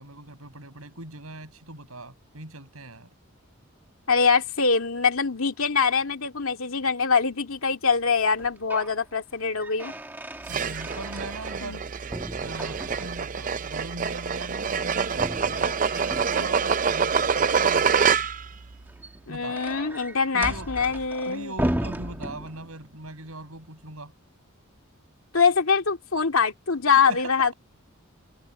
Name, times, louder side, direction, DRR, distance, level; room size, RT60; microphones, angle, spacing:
voice 1, 0.0-3.1 10.5-11.8 12.4-18.3 19.3-19.6 20.3-20.7 21.2-24.1 26.9-27.5, right 2 dB, 80° right, 6.8 m, -41 dB
voice 2, 4.1-9.9 11.6-11.8 19.3-21.5 25.3-27.5, left 5 dB, 75° left, 2.2 m, -23 dB
sound 1, 8.3-9.0 9.3-11.8 12.1-13.3 15.1-16.7 18.7-22.9, right 1 dB, 10° right, 1.4 m, -35 dB
sound 2, 10.5-18.6, right 6 dB, 35° right, 0.5 m, -26 dB
head